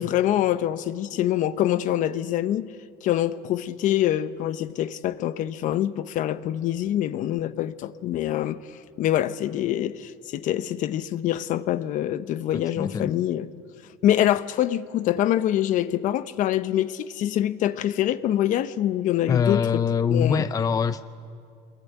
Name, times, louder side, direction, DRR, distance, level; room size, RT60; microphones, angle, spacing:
voice 1, 0.0-2.7 3.0-8.6 9.0-13.5 14.0-19.6 20.1-20.4, left 12 dB, 55° left, 0.9 m, -25 dB
voice 2, 12.5-13.2 19.3-21.0, left 6 dB, 25° left, 0.6 m, -24 dB
24.5 x 21.5 x 9.3 m
cardioid pair, 120°, 16 cm